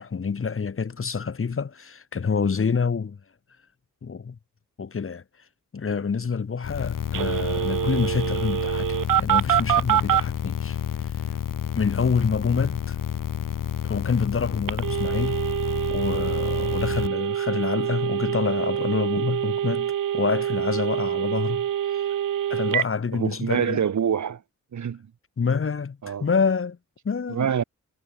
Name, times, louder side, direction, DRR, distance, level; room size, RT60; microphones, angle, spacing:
voice 1, 0.0-3.2 4.0-4.4 4.8-5.2 5.7-10.8 11.7-13.0 13.8-15.4 15.9-22.1 22.5-23.9 25.4-26.8 27.0-27.5, left 5 dB, 45° left, 1.6 m, -27 dB
sound 1, 6.6-17.1, left 9 dB, 90° left, 2.4 m, -30 dB
Telephone, 7.1-10.2 14.7-22.9, right 11 dB, 85° right, 0.9 m, -25 dB
voice 2, 23.1-24.4 24.7-25.0 26.0-26.3 27.3-27.6, right 8 dB, 65° right, 1.5 m, -25 dB
wide cardioid pair, 95°, 31 cm